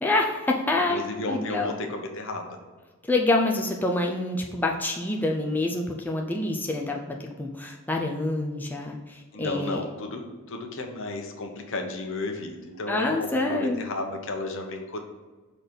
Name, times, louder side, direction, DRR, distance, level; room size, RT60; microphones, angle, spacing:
voice 1, 0.0-1.8 3.1-9.8 12.9-13.8, left 2 dB, 10° left, 0 dB, 0.5 m, -27 dB
voice 2, 0.9-2.6 9.3-15.0, left 2 dB, 65° left, 4 dB, 1.0 m, -33 dB
6.0 x 4.1 x 5.2 m, 1.3 s
head